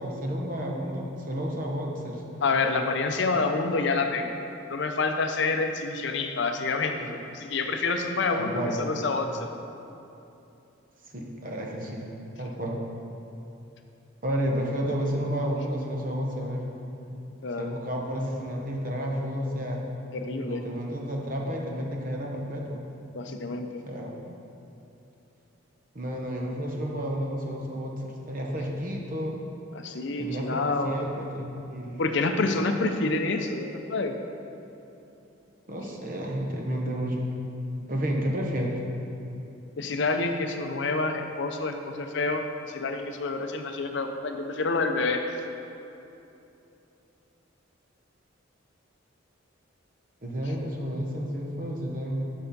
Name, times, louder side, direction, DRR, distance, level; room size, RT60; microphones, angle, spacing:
voice 1, 0.0-2.2 7.0-7.1 8.3-8.8 11.1-12.1 12.4-12.8 14.2-16.7 17.6-19.8 20.4-22.8 23.9-24.2 25.9-29.4 30.2-32.0 35.7-37.2 37.9-38.8 50.2-52.2, equal, 40° right, 0 dB, 0.9 m, -31 dB
voice 2, 2.4-4.3 4.7-9.5 17.4-17.7 20.1-20.6 23.1-23.8 29.7-31.0 32.0-34.2 39.8-45.2, left 3 dB, 60° left, 5 dB, 0.5 m, -28 dB
6.8 x 5.5 x 5.3 m, 2.8 s
head